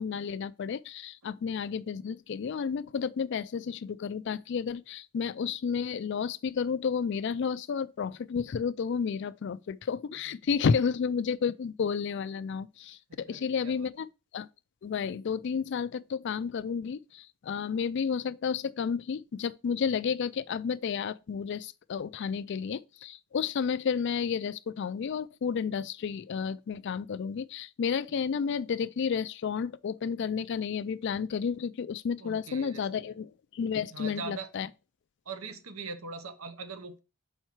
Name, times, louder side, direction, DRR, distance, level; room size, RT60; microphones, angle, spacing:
voice 1, 0.0-14.1 14.3-14.5 14.8-34.7, left 6 dB, 55° left, 0.3 m, -31 dB
voice 2, 10.3-10.8 13.1-13.9 32.2-33.1 33.9-34.5 35.2-37.0, right 4 dB, 70° right, 0.9 m, -42 dB
5.6 x 4.5 x 4.5 m
head